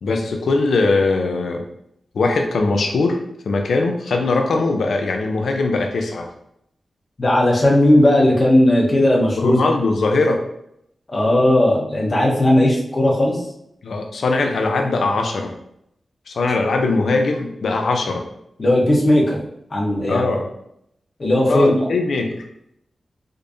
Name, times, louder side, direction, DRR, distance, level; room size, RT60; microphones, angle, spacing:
voice 1, 0.0-1.6 2.1-3.2 3.5-6.3 9.4-10.4 13.8-15.5 16.3-18.2 20.1-20.5 21.5-22.4, left 3 dB, 80° left, 4 dB, 0.5 m, -20 dB
voice 2, 7.2-9.6 11.1-13.4 18.6-19.4 19.7-20.3 21.2-21.8, left 1 dB, 50° left, -3 dB, 1.0 m, -16 dB
5.1 x 2.3 x 2.6 m, 0.76 s
cardioid pair, 50°, 0 cm